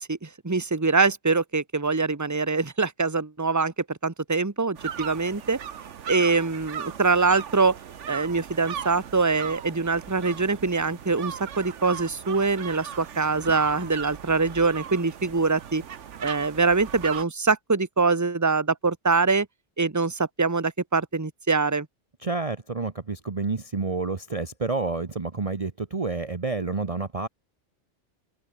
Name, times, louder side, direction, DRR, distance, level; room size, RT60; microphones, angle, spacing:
voice 1, 0.0-5.6 6.1-7.8 8.1-15.8 16.2-19.5 19.8-21.9, right 4 dB, 15° right, 1.2 m, -24 dB
sound 1, 4.8-17.2, right 8 dB, 80° right, 1.3 m, -38 dB
voice 2, 22.2-27.3, right 3 dB, 30° right, 1.1 m, -29 dB
open air
omnidirectional pair, 1.2 m